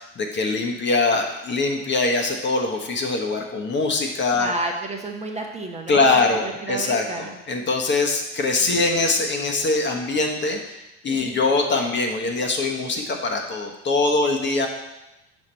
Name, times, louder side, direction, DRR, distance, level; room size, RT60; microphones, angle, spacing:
voice 1, 0.0-4.5 5.9-14.7, left 3 dB, 30° left, 2 dB, 1.1 m, -23 dB
voice 2, 4.4-7.4 8.6-8.8 11.1-11.4, right 2 dB, 20° right, 1 dB, 0.9 m, -31 dB
6.3 x 4.8 x 4.4 m, 0.96 s
hypercardioid pair, 70°, 36 cm